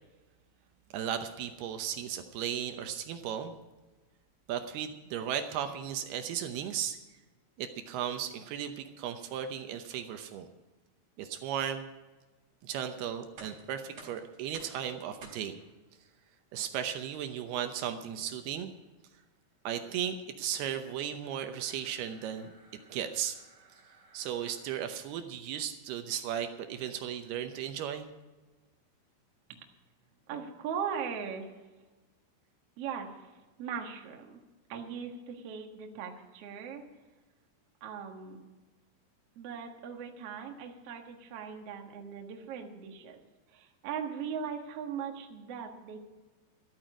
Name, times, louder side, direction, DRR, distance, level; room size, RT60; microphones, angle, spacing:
voice 1, 0.9-3.5 4.5-7.0 7.6-10.5 11.2-11.9 12.6-15.6 16.5-18.7 19.7-22.5 22.9-23.4 24.1-28.1, right 9 dB, 75° right, 7 dB, 2.7 m, -36 dB
sound 1, 13.2-25.1, right 3 dB, 40° right, 4.9 m, -58 dB
voice 2, 30.3-31.5 32.8-34.4 34.7-36.8 37.8-38.4 39.3-43.2 43.5-46.0, right 7 dB, 60° right, 3 dB, 1.7 m, -39 dB
13.5 x 13.5 x 5.0 m, 1.2 s
omnidirectional pair, 5.0 m